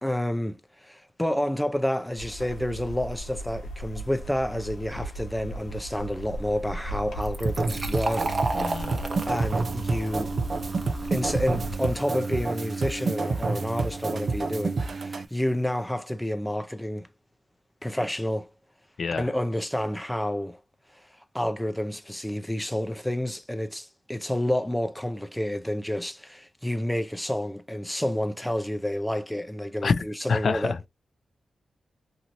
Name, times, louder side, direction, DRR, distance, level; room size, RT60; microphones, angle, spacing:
voice 1, 0.0-8.4 9.3-10.3 11.1-17.1 17.8-18.5 19.1-20.6 21.3-30.7, left 1 dB, 5° left, 0.5 m, -29 dB
sound 1, 2.2-11.8, right 1 dB, 90° left, 1.1 m, -38 dB
Fill (with liquid), 7.2-14.6, right 2 dB, 35° right, 0.9 m, -36 dB
sound 2, 7.4-15.2, right 4 dB, 55° right, 0.4 m, -29 dB
voice 2, 8.5-9.0 19.0-19.3 29.8-30.0 30.3-30.8, left 5 dB, 65° left, 0.3 m, -26 dB
3.0 x 2.6 x 2.5 m
cardioid pair, 75°, 0 cm